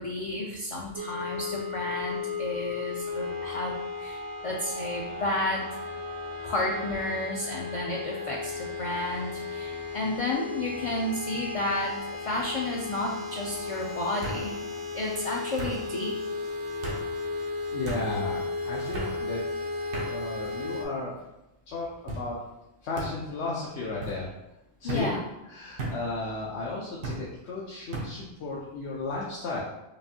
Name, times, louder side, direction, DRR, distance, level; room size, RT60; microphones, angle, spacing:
voice 1, 0.0-5.7 6.4-14.5 14.9-16.1 24.8-25.2, left 1 dB, 55° left, -1 dB, 0.3 m, -32 dB
sound 1, 1.0-20.9, left 3 dB, 50° right, 0.4 m, -35 dB
sound 2, 10.8-11.2 11.5-12.1 13.2-13.3 14.2-14.4 15.6-15.8 16.8-17.0 17.8-18.0 18.9-19.2 19.9-20.1 20.9-21.3 22.1-22.3 23.0-23.1 24.0-24.2 24.9-25.1 25.8-26.0 27.0-27.2 27.9-28.1, right 2 dB, 90° right, 1.2 m, -35 dB
voice 2, 17.7-19.4 20.0-21.2 21.7-22.4 22.8-24.3 24.8-25.1 25.5-29.6, left 3 dB, 85° left, -5 dB, 1.0 m, -34 dB
5.0 x 2.6 x 2.7 m, 0.94 s
omnidirectional pair, 1.1 m